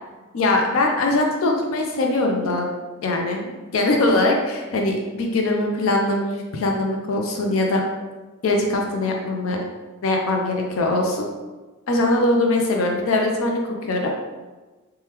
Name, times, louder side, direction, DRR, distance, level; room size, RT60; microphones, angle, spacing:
voice 1, 0.3-2.7 3.0-7.8 8.4-9.6 10.0-11.3 11.9-14.1, left 2 dB, 85° left, 1 dB, 0.4 m, -21 dB
3.3 x 2.2 x 2.9 m, 1.2 s
head